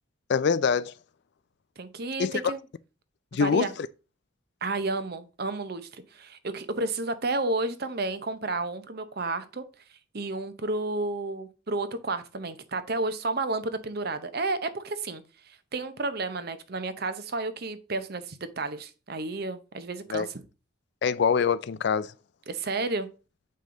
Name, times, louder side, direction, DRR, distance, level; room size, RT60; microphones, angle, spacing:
voice 1, 0.3-0.9 2.2-2.5 3.3-3.7 20.1-20.3 21.0-22.1, left 6 dB, 55° left, 0.4 m, -24 dB
voice 2, 1.8-2.6 3.4-3.7 4.6-9.6 10.1-20.4 22.5-23.1, right 2 dB, 50° right, 0.8 m, -31 dB
7.6 x 5.4 x 3.8 m
head